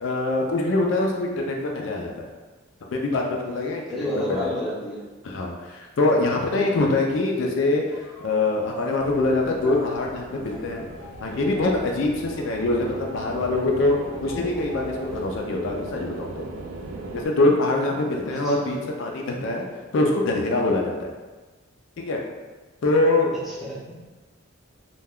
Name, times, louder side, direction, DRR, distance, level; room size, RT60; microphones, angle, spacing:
voice 1, 0.0-2.3 2.9-4.5 5.2-10.9 11.2-16.4 17.1-19.7 19.9-21.1 22.0-22.2 22.8-23.4, left 2 dB, 65° left, 0 dB, 0.3 m, -24 dB
voice 2, 3.9-5.0 18.3-18.7 23.5-23.9, equal, ahead, -8 dB, 0.5 m, -31 dB
sound 1, 7.9-15.3, left 3 dB, 85° left, 0.8 m, -45 dB
sound 2, 9.0-17.3, right 2 dB, 80° right, 0.4 m, -38 dB
2.2 x 2.1 x 3.4 m, 1.3 s
head